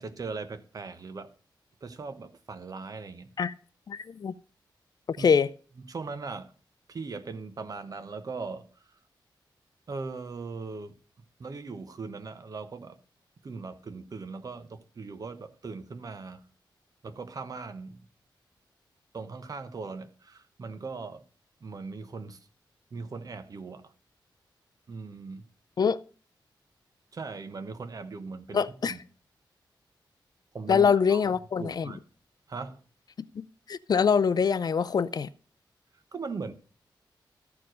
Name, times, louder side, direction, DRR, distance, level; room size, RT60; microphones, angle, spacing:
voice 1, 0.0-1.3 1.8-3.3 5.2-5.3 5.9-6.5 6.9-8.7 9.9-10.9 11.4-13.0 13.4-16.4 17.0-18.0 19.1-21.2 21.6-22.4 22.9-23.9 24.9-25.5 27.1-29.0 30.5-31.3 31.6-32.0 32.5-32.8 36.1-36.5, right 4 dB, 45° right, 1.1 m, -39 dB
voice 2, 3.9-4.3 5.1-5.5 25.8-26.0 28.5-29.0 30.7-31.9 33.4-33.5 33.7-35.3, left 6 dB, 55° left, 0.5 m, -24 dB
13.5 x 4.7 x 6.3 m
wide cardioid pair, 135°, 8 cm